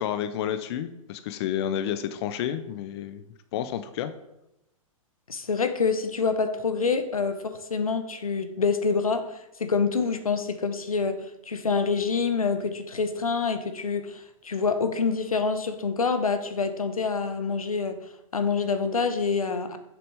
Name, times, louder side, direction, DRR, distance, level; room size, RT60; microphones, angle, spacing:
voice 1, 0.0-3.2 3.5-4.1, left 10 dB, 50° left, 11 dB, 0.5 m, -30 dB
voice 2, 5.3-18.0 18.3-19.8, left 5 dB, 90° left, 9 dB, 0.8 m, -26 dB
6.8 x 6.2 x 3.4 m, 0.87 s
hypercardioid pair, 115°, 18 cm